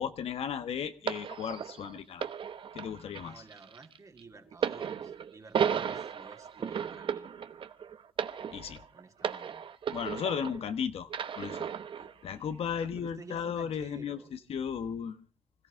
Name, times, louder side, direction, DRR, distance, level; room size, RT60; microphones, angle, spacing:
voice 1, 0.0-2.3 2.7-3.3 8.5-8.8 9.9-11.7 12.2-15.2, left 7 dB, 65° left, 10 dB, 1.2 m, -35 dB
sound 1, 1.1-10.7 11.1-12.1 12.9-13.1, right 7 dB, 55° right, 0.9 m, -35 dB
voice 2, 3.1-7.3 8.9-9.7 12.8-14.3, right 4 dB, 30° right, 6 dB, 2.3 m, -51 dB
25.5 x 14.0 x 3.6 m, 0.32 s
cardioid pair, 95°, 11 cm